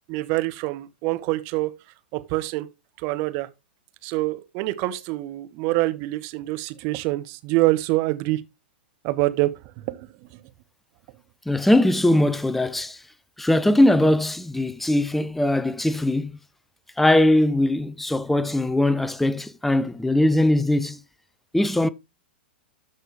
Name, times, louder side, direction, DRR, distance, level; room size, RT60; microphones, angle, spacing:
voice 1, 0.1-1.8 2.1-2.7 3.0-3.5 4.0-8.4 9.0-9.5 9.9-10.4, right 19 dB, 45° right, 1.0 m, -25 dB
voice 2, 11.5-13.0 13.4-16.4 17.0-21.0 21.5-21.9, left 1 dB, 5° left, 0.5 m, -20 dB
13.0 x 4.5 x 3.4 m
hypercardioid pair, 105°, 5 cm